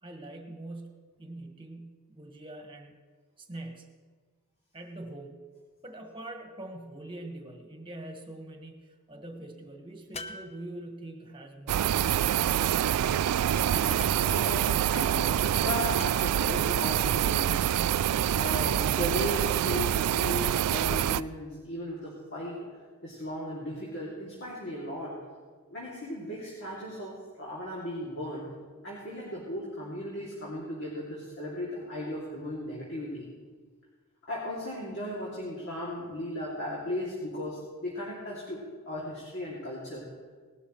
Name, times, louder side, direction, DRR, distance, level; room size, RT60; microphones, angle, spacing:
voice 1, 0.0-2.9 3.4-4.0 4.7-5.5 5.8-12.9, right 1 dB, 25° right, 3 dB, 1.5 m, -44 dB
sound 1, 10.1-11.2 13.7-14.5 15.9-16.6 18.8-19.5, left 3 dB, 30° left, 0.7 m, -44 dB
sound 2, 11.7-21.2, right 10 dB, 85° right, 0.3 m, -26 dB
voice 2, 14.1-17.7 18.3-22.7 23.0-25.2 25.7-28.5 28.8-33.3 34.3-40.0, left 1 dB, 55° left, -6 dB, 2.7 m, -36 dB
19.0 x 12.0 x 3.2 m, 1.5 s
head